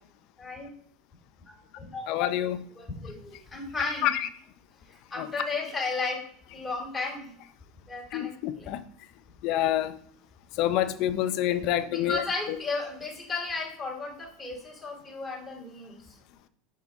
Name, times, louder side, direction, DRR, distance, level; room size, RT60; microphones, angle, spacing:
voice 1, 0.4-0.7 1.5-2.2 2.8-4.1 5.1-6.2 6.5-7.3 7.9-8.3 8.6-8.7 11.9-16.1, left 3 dB, 10° left, -2 dB, 2.3 m, -34 dB
voice 2, 2.1-2.6 4.0-4.3 5.2-5.3 8.1-8.8 9.4-9.9 10.6-12.2, left 12 dB, 55° left, 12 dB, 0.5 m, -27 dB
5.0 x 4.9 x 4.1 m, 0.63 s
supercardioid pair, 135°, 0 cm